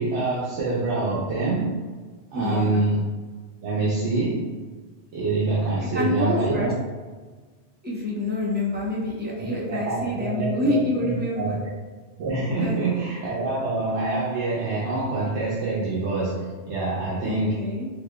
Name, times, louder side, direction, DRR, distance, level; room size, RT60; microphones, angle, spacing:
voice 1, 0.0-1.8 2.3-3.1 3.6-4.6 5.1-6.7 9.4-11.7 12.2-17.7, right 3 dB, 85° right, -7 dB, 1.0 m, -26 dB
voice 2, 2.3-2.9 5.9-6.7 7.8-11.6 12.6-13.1 17.2-17.9, left 2 dB, 10° right, -5 dB, 0.5 m, -27 dB
4.0 x 2.8 x 2.2 m, 1.4 s
omnidirectional pair, 1.2 m